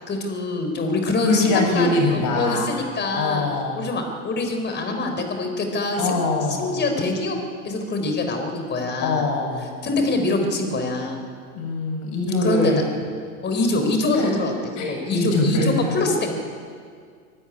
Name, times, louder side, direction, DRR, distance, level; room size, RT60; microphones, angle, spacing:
voice 1, 0.1-3.5 3.8-6.1 6.5-7.4 7.6-9.2 9.8-11.2 12.3-12.7 13.4-14.5 14.9-16.3, left 2 dB, 25° left, 5 dB, 4.2 m, -24 dB
voice 2, 1.2-2.7 3.2-3.9 6.0-6.8 9.0-9.7 11.5-12.8 14.1-14.3 14.8-15.8, left 2 dB, 40° left, 1 dB, 7.9 m, -23 dB
23.5 x 13.0 x 10.0 m, 2.1 s
hypercardioid pair, 120°, 44 cm